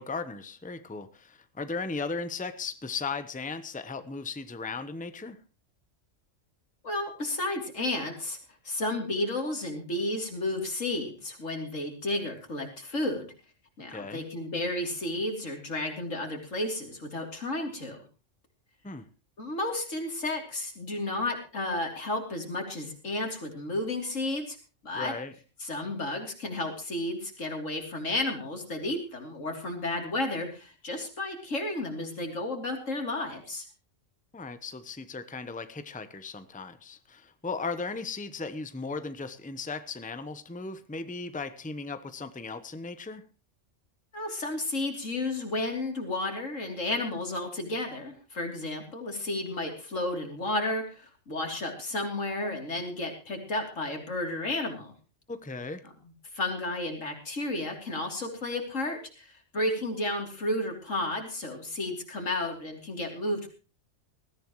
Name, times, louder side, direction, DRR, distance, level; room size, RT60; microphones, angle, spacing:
voice 1, 0.0-5.4 13.9-14.2 18.8-19.1 24.9-25.3 34.3-43.2 55.3-55.8, left 4 dB, 10° left, 11 dB, 0.8 m, -37 dB
voice 2, 6.8-8.4 8.6-13.3 13.8-18.0 19.4-24.6 24.8-25.2 25.6-33.7 44.1-54.9 56.3-63.5, left 2 dB, 90° left, 3 dB, 3.6 m, -32 dB
20.5 x 14.5 x 3.1 m, 0.34 s
omnidirectional pair, 1.3 m